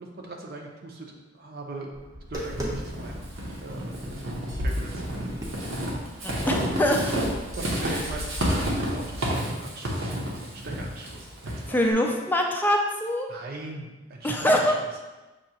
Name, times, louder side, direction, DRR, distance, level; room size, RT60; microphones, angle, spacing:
voice 1, 0.0-1.9 2.3-3.3 3.6-3.9 4.6-5.5 7.6-11.8 13.3-15.0, right 2 dB, 50° right, 1 dB, 0.7 m, -40 dB
Tap, 1.9-8.6, right 1 dB, 20° right, 0.7 m, -40 dB
Walk footsteps / Squeak, 2.3-11.9, equal, 80° right, 1.0 m, -30 dB
voice 2, 6.2-7.2 7.9-8.0 11.7-13.3 14.2-14.7, equal, 10° left, 1 dB, 0.4 m, -24 dB
6.1 x 2.8 x 2.9 m, 1.1 s
head